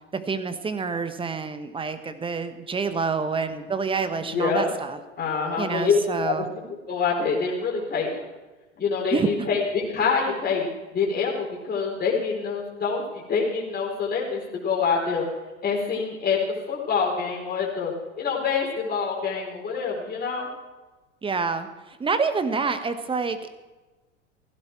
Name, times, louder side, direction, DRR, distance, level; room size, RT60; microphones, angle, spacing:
voice 1, 0.1-5.0 5.6-6.4 9.1-9.5 21.2-23.5, right 5 dB, 15° right, 10 dB, 1.3 m, -27 dB
voice 2, 4.2-4.7 5.2-8.2 8.8-13.0 13.3-15.3 15.6-16.4 16.7-20.5, left 5 dB, 25° left, -2 dB, 4.4 m, -26 dB
16.5 x 15.5 x 4.6 m, 1.2 s
figure-of-eight pair, 90°, 38 cm